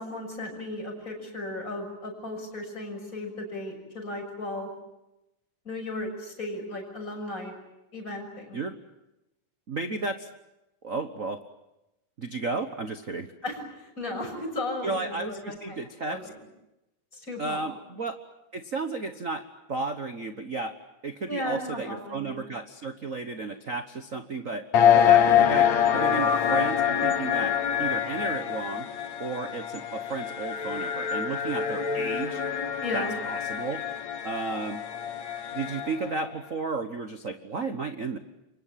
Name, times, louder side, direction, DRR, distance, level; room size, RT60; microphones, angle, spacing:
voice 1, 0.0-4.7 5.6-7.6 7.9-8.6 13.4-15.8 16.1-16.4 17.1-17.8 21.3-22.4 32.8-33.2, left 2 dB, 25° left, 2 dB, 7.0 m, -35 dB
voice 2, 9.7-10.3 10.8-11.4 12.2-13.3 14.8-16.3 17.4-18.2 18.5-19.4 19.7-20.7 21.0-24.7 24.9-28.9 29.2-32.4 32.9-33.8 34.2-34.8 35.5-38.2, right 3 dB, 70° right, 8 dB, 0.7 m, -33 dB
sound 1, 24.7-36.1, left 9 dB, 65° left, 2.8 m, -25 dB
28.5 x 24.5 x 7.6 m, 0.94 s
omnidirectional pair, 3.4 m